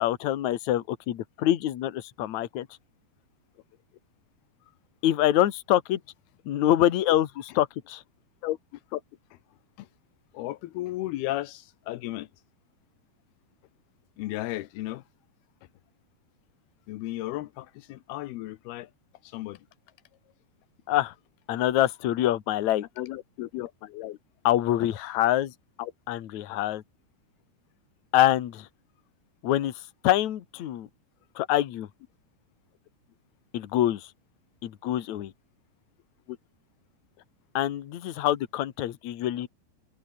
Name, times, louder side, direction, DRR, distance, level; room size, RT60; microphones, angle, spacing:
voice 1, 0.0-2.7 5.0-6.0 6.5-8.0 20.9-21.1 21.5-22.9 24.4-25.5 26.1-26.8 28.1-28.7 29.4-30.9 31.4-31.9 33.5-34.1 34.6-35.3 37.5-39.5, left 13 dB, 55° left, 2.5 m, -25 dB
voice 2, 8.4-9.0 9.3-9.4 9.8-9.9 10.3-12.3 14.2-15.0 16.9-18.9 19.2-19.7 23.0-24.2 25.8-25.9 36.3-36.4, left 16 dB, 85° left, 2.9 m, -34 dB
omnidirectional pair, 4.5 m